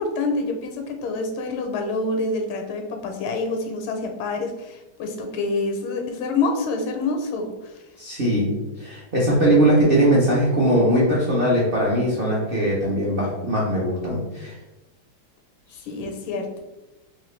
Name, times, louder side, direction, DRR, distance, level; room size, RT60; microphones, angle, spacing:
voice 1, 0.0-7.7 15.8-16.6, left 3 dB, 90° left, 4 dB, 1.5 m, -27 dB
voice 2, 8.0-8.5 8.8-14.5, right 1 dB, 75° right, -5 dB, 0.5 m, -20 dB
3.6 x 2.9 x 3.1 m, 1.0 s
omnidirectional pair, 2.2 m